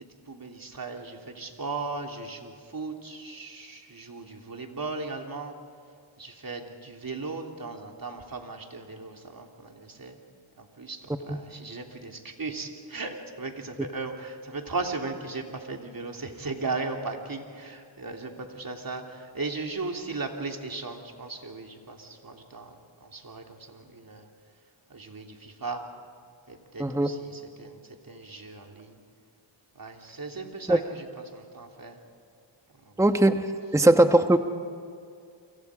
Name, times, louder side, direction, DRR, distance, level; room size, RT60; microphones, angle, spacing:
voice 1, 0.3-5.5 6.2-10.2 10.6-24.3 24.9-25.8 26.5-27.8 28.0-29.0 29.7-32.0 32.7-33.0, right 3 dB, 45° right, 3 dB, 3.1 m, -37 dB
voice 2, 33.0-33.5 33.7-34.4, right 1 dB, 5° right, 7 dB, 1.1 m, -19 dB
29.5 x 24.0 x 5.0 m, 2.3 s
cardioid pair, 50°, 48 cm